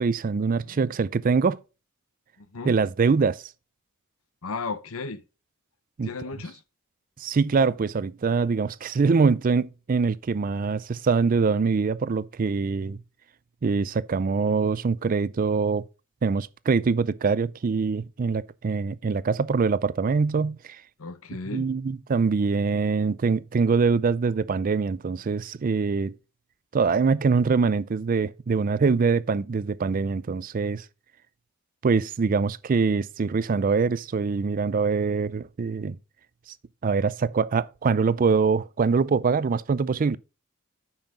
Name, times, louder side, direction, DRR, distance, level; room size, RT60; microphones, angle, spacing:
voice 1, 0.0-1.6 2.7-3.4 6.0-6.1 7.2-13.0 13.6-15.8 16.2-20.8 21.5-26.1 26.7-30.8 31.8-36.0 36.8-40.2, right 4 dB, 40° right, 0.4 m, -24 dB
voice 2, 2.4-2.7 4.4-5.2 6.0-6.6 21.0-21.6, left 4 dB, 70° left, 0.8 m, -34 dB
8.9 x 5.7 x 3.7 m
head